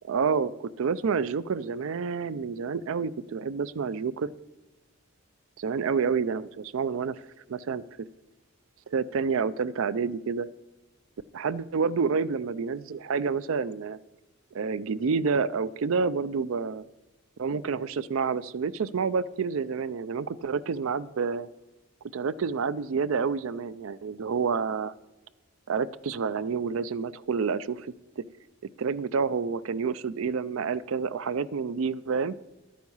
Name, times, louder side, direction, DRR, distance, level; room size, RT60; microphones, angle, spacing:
voice 1, 0.1-4.3 5.6-7.2 7.5-8.1 8.9-10.5 11.3-14.0 14.5-16.8 17.4-21.5 22.1-24.9 25.7-28.2 28.8-32.4, right 5 dB, 70° right, 18 dB, 0.4 m, -29 dB
11.5 x 9.3 x 5.5 m, 1.1 s
head